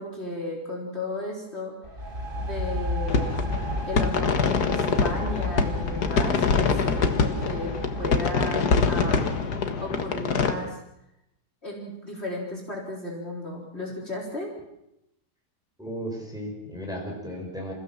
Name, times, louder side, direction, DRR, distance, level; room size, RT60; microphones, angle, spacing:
voice 1, 0.0-1.7 2.3-3.4 3.8-9.3 9.8-10.8 11.6-14.5, left 1 dB, 40° left, -2 dB, 4.4 m, -34 dB
sound 1, 1.8-9.6, left 1 dB, 30° right, 2.3 m, -33 dB
sound 2, 3.1-10.5, left 5 dB, 75° left, 2.1 m, -25 dB
voice 2, 15.8-17.7, equal, ahead, -1 dB, 5.4 m, -35 dB
27.5 x 16.0 x 7.4 m, 0.84 s
omnidirectional pair, 1.7 m